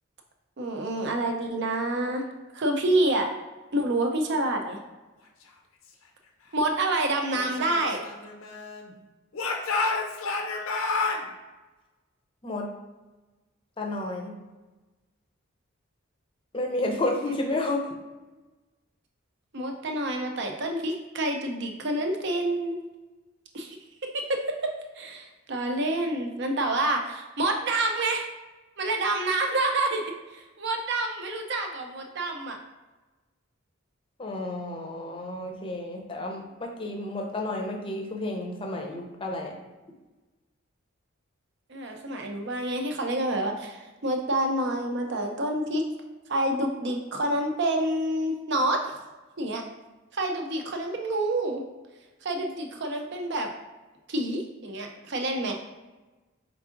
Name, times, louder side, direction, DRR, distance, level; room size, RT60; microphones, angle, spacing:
voice 1, 0.6-2.2 2.5-3.3 3.7-4.8 6.5-8.0 19.5-22.8 23.5-23.8 24.3-28.3 28.8-30.0 30.3-32.6 41.7-45.8 46.3-48.9 49.4-49.6 50.1-51.6 52.2-53.5 54.1-55.5, right 1 dB, 55° right, 3 dB, 0.6 m, -28 dB
Speech / Shout, 7.4-8.9 9.3-11.2, left 3 dB, 85° left, 0.6 m, -30 dB
voice 2, 13.8-14.3 16.5-17.8 34.2-39.5, left 2 dB, 25° left, 1 dB, 0.6 m, -31 dB
4.6 x 3.6 x 2.5 m, 1.2 s
head